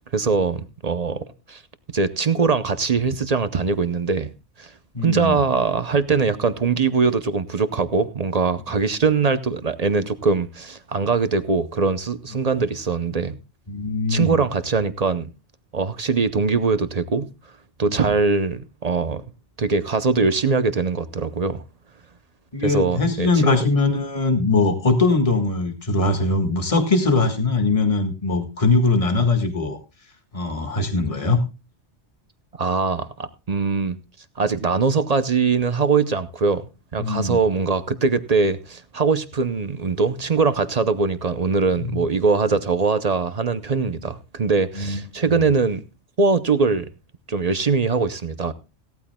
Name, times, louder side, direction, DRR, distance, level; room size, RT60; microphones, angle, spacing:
voice 1, 0.1-1.6 1.9-4.3 4.6-4.7 5.0-13.4 14.1-15.3 15.7-17.3 17.8-19.2 19.6-21.6 22.6-23.6 32.6-34.0 34.4-36.7 36.9-45.8 46.2-46.9 47.3-48.5, right 4 dB, 40° right, 0.7 m, -22 dB
voice 2, 4.9-5.4 13.7-14.4 17.9-18.1 22.5-29.8 30.3-31.4 37.0-37.4 44.8-45.0 45.3-45.4, left 3 dB, 30° left, 1.8 m, -21 dB
17.5 x 13.0 x 2.2 m
omnidirectional pair, 1.2 m